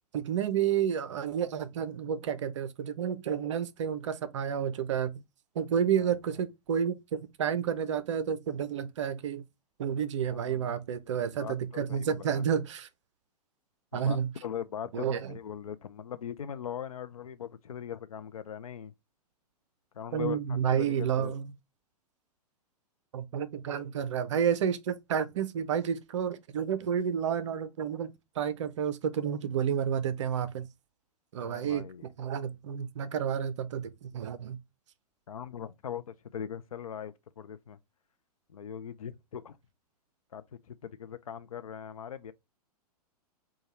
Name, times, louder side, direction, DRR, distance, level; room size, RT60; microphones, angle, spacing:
voice 1, 0.1-5.2 5.6-9.4 9.8-12.9 13.9-14.3 14.9-15.3 20.1-21.5 23.1-28.1 28.4-30.7 31.3-31.9 32.2-34.6, right 8 dB, 50° right, 0.5 m, -30 dB
voice 2, 10.3-10.8 11.4-12.4 13.9-14.2 14.4-18.9 19.9-21.3 31.4-32.1 35.3-37.8 38.5-39.6 40.3-42.3, left 9 dB, 65° left, 0.4 m, -40 dB
4.5 x 2.2 x 2.9 m
figure-of-eight pair, 110°, 20 cm